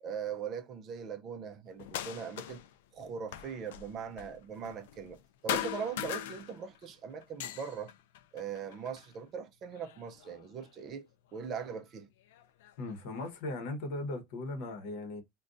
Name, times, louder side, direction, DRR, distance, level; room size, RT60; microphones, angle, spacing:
voice 1, 0.0-2.6 2.9-7.9 8.3-11.1 11.3-12.1, right 6 dB, 30° right, 0.5 m, -40 dB
sound 1, 1.8-2.7 3.0-5.2 5.5-6.9 7.2-9.1 9.7-10.6 11.6-11.7 12.3-13.3, left 12 dB, 80° left, 0.3 m, -40 dB
voice 2, 12.8-15.2, left 2 dB, 55° left, 0.9 m, -38 dB
2.5 x 2.2 x 3.7 m
supercardioid pair, 165°, 0 cm